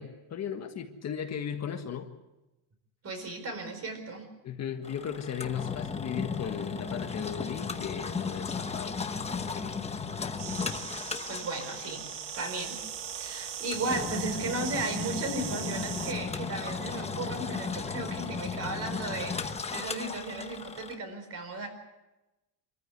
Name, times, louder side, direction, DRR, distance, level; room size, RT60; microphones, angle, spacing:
voice 1, 0.0-2.1 4.4-9.7 10.6-10.7 11.1-11.2, left 8 dB, 35° left, 5 dB, 1.6 m, -37 dB
voice 2, 3.0-4.3 10.9-11.0 11.3-12.0 12.4-12.8 13.1-21.7, right 2 dB, 35° right, 6 dB, 4.7 m, -35 dB
Engine, 4.8-21.0, left 5 dB, 15° left, 1.0 m, -36 dB
sound 1, 10.4-16.1, right 15 dB, 85° right, 1.0 m, -40 dB
25.5 x 14.5 x 8.1 m, 1.0 s
cardioid pair, 145°, 43 cm